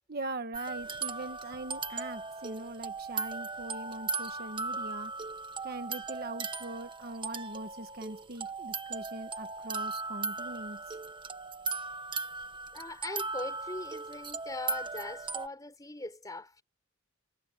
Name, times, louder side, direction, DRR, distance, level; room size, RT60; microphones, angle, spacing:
voice 1, 0.1-5.1 5.6-10.8, right 2 dB, 50° right, 1.6 m, -41 dB
sound 1, 0.5-15.5, right 4 dB, 25° right, 1.5 m, -38 dB
voice 2, 12.7-16.6, left 2 dB, 15° left, 4.6 m, -41 dB
head